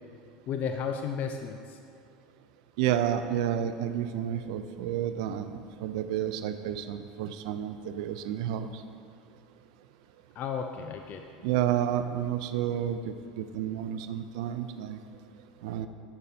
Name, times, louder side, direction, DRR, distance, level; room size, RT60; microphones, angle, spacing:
voice 1, 0.5-1.8 10.4-11.2, left 6 dB, 50° left, 5 dB, 0.4 m, -33 dB
voice 2, 2.8-8.8 11.4-15.0 15.6-15.9, right 10 dB, 70° right, 9 dB, 0.3 m, -30 dB
8.8 x 6.6 x 2.7 m, 2.5 s
hypercardioid pair, 85°, 4 cm